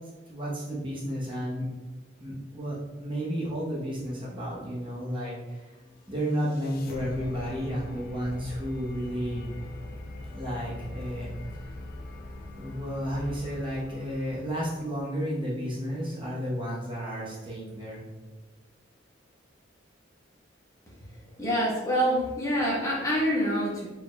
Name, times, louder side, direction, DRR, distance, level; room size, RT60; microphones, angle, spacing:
voice 1, 0.3-1.7 2.2-5.8 6.1-9.4 10.3-11.3 12.5-18.0, equal, 25° right, -6 dB, 0.9 m, -32 dB
sound 1, 5.9-15.0, left 1 dB, 50° left, 0.5 m, -42 dB
voice 2, 21.4-23.9, equal, 15° left, -6 dB, 1.1 m, -26 dB
4.4 x 4.2 x 2.3 m, 1.2 s
head